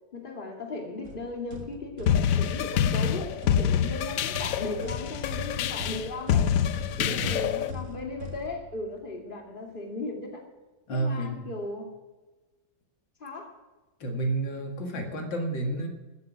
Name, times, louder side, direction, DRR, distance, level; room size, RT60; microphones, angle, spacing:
voice 1, 0.1-6.5 7.0-10.4 10.9-11.9 13.2-13.5, left 2 dB, 25° left, 2 dB, 2.5 m, -37 dB
sound 1, 1.0-9.0, left 2 dB, 50° right, 2.2 m, -40 dB
sound 2, 2.1-7.7, left 9 dB, 70° left, 0.8 m, -26 dB
voice 2, 7.0-7.4 10.9-11.4 14.0-15.9, right 2 dB, 85° left, 3 dB, 2.6 m, -30 dB
15.0 x 8.0 x 9.2 m, 1.2 s
omnidirectional pair, 2.0 m